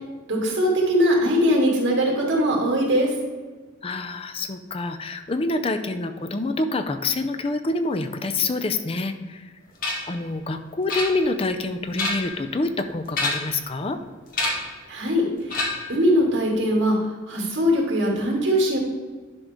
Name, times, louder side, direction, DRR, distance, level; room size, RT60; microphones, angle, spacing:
voice 1, 0.3-3.2 14.9-15.6 15.9-17.0 17.3-18.8, equal, 75° right, -1 dB, 2.4 m, -21 dB
voice 2, 3.8-9.5 10.1-14.0, left 2 dB, 30° left, 8 dB, 0.5 m, -27 dB
sound 1, 9.8-10.2 10.9-11.5 11.8-12.4 13.1-13.6 14.3-14.8 15.5-16.0, left 2 dB, 45° left, 1.7 m, -27 dB
10.5 x 5.4 x 3.6 m, 1.4 s
head